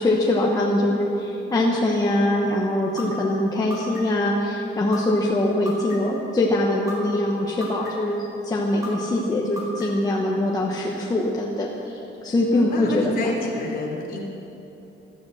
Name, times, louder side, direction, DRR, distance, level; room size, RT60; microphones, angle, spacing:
voice 1, 0.0-8.2 8.4-13.4, left 1 dB, 20° left, -2 dB, 1.1 m, -23 dB
sound 1, 3.0-3.1 3.7-4.2 4.9-5.0 5.6-6.2 6.9-7.0 7.6-8.1 8.8-8.9 9.6-10.1, left 3 dB, 15° right, 4.3 m, -34 dB
voice 2, 12.5-14.2, left 2 dB, 45° left, -1 dB, 3.1 m, -29 dB
17.0 x 12.5 x 6.4 m, 3.0 s
cardioid pair, 180°, 21 cm